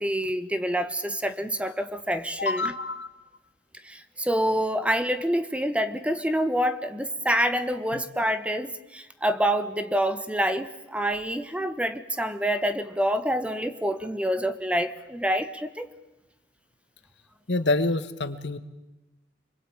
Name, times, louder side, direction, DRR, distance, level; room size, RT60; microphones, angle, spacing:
voice 1, 0.0-2.7 3.8-15.9, equal, 5° right, 12 dB, 1.1 m, -27 dB
voice 2, 2.4-3.1 7.9-8.0 17.5-18.6, left 2 dB, 80° left, 13 dB, 1.5 m, -27 dB
26.5 x 22.0 x 8.9 m, 0.99 s
head